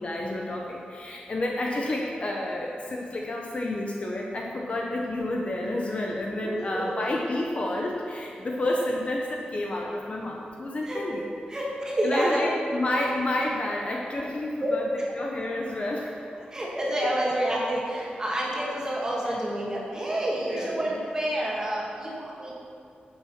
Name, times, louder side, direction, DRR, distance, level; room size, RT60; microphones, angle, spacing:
voice 1, 0.0-11.3 12.0-14.9 15.2-16.1 19.3-19.4 20.4-20.7 22.3-22.5, left 1 dB, 40° left, -1 dB, 1.0 m, -30 dB
voice 2, 6.4-7.0 10.8-11.0 11.5-12.4 14.6-14.7 16.5-22.5, right 1 dB, 25° right, -5 dB, 2.3 m, -28 dB
10.5 x 7.9 x 5.9 m, 2.5 s
wide cardioid pair, 160°, 3 cm